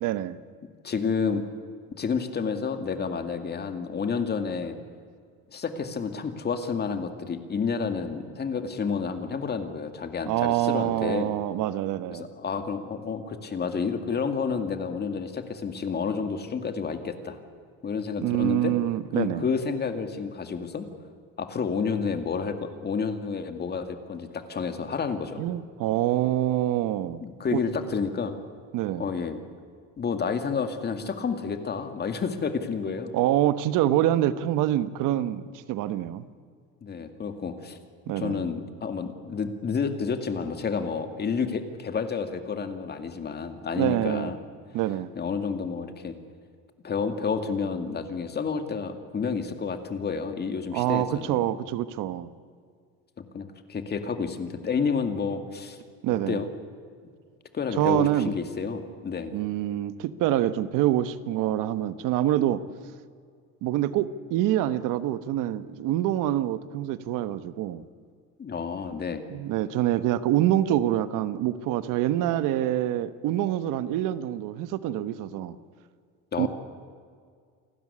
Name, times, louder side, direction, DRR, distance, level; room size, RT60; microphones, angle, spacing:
voice 1, 0.0-0.4 10.3-12.3 18.2-19.4 25.4-27.2 27.5-27.6 28.7-29.1 33.1-36.3 38.1-38.4 43.8-44.3 44.7-45.1 50.7-52.3 56.0-56.4 57.8-58.3 59.3-62.6 63.6-67.8 69.3-75.6 76.4-76.5, right 13 dB, 75° right, 13 dB, 1.2 m, -26 dB
voice 2, 0.8-1.4 2.0-4.8 5.5-11.3 12.1-17.4 17.8-18.7 19.1-20.9 21.4-25.5 27.2-28.4 29.0-29.4 30.0-33.1 36.8-37.8 38.2-44.4 45.2-46.1 46.8-51.4 53.2-55.8 56.1-56.5 57.5-59.3 68.4-69.2 76.3-76.5, left 5 dB, 30° left, 8 dB, 2.2 m, -30 dB
28.5 x 12.5 x 9.8 m, 2.1 s
cardioid pair, 135°, 32 cm